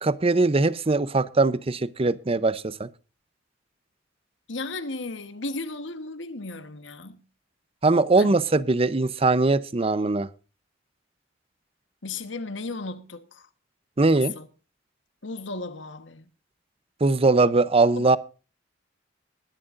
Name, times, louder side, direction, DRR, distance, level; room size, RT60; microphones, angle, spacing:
voice 1, 0.0-2.9 7.8-10.3 14.0-14.3 17.0-18.2, right 3 dB, 30° right, 0.6 m, -21 dB
voice 2, 4.5-7.2 8.2-8.4 12.0-13.5 14.1-14.5 15.2-16.3 18.0-18.2, left 3 dB, 70° left, 1.2 m, -35 dB
20.5 x 11.0 x 2.5 m
head